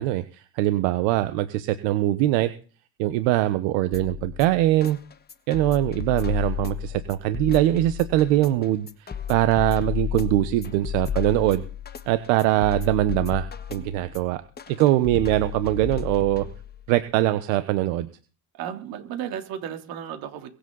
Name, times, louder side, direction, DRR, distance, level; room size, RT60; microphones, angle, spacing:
voice 1, 0.0-2.5 3.0-5.0 5.5-11.6 12.1-14.4 14.8-16.5 16.9-18.1, right 15 dB, 90° right, 11 dB, 1.2 m, -22 dB
sound 1, 3.9-16.9, left 9 dB, 25° left, 1.5 m, -33 dB
voice 2, 13.8-14.4 18.5-20.5, right 9 dB, 65° right, 6 dB, 3.4 m, -35 dB
23.0 x 8.3 x 4.0 m, 0.37 s
cardioid pair, 110°, 38 cm